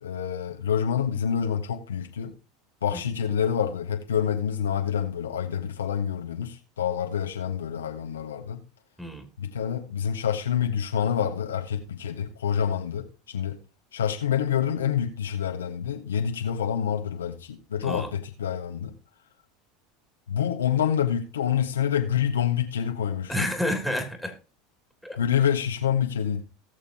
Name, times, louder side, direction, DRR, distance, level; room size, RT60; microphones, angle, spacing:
voice 1, 0.0-2.3 2.8-8.6 9.4-13.6 13.9-18.9 20.3-23.5 25.2-26.4, left 8 dB, 90° left, 1.4 m, -27 dB
voice 2, 23.3-24.3 25.0-25.2, left 1 dB, ahead, 2.9 m, -29 dB
18.5 x 6.9 x 2.9 m
hypercardioid pair, 90°, 0 cm